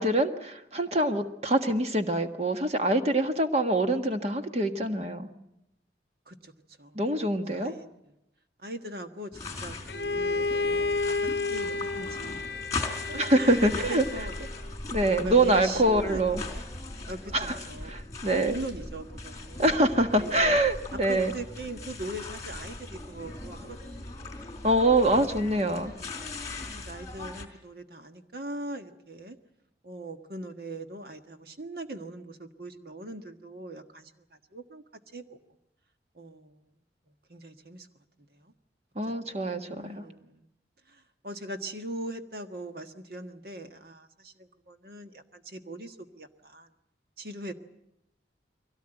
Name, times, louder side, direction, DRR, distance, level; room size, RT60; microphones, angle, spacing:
voice 1, 0.0-5.3 6.9-7.7 13.2-14.0 14.9-16.4 17.3-17.6 17.9-18.6 19.6-21.3 24.6-25.9 38.9-40.0, right 1 dB, 35° right, 6 dB, 1.5 m, -25 dB
voice 2, 7.5-7.9 8.6-12.5 13.1-14.4 14.9-16.5 17.0-18.0 18.4-19.6 20.1-20.5 21.1-23.8 25.6-26.1 26.7-29.4 29.8-34.8 35.1-35.4 36.1-36.7 37.3-37.9 38.3-38.5 39.2-39.3 39.6-40.5 40.9-46.7 47.2-47.5, right 1 dB, 60° right, 6 dB, 1.5 m, -41 dB
sound 1, 9.3-27.5, left 2 dB, 20° left, 3.8 m, -39 dB
Bowed string instrument, 9.9-14.7, left 3 dB, 65° left, 0.8 m, -31 dB
23.5 x 17.5 x 9.0 m, 0.86 s
head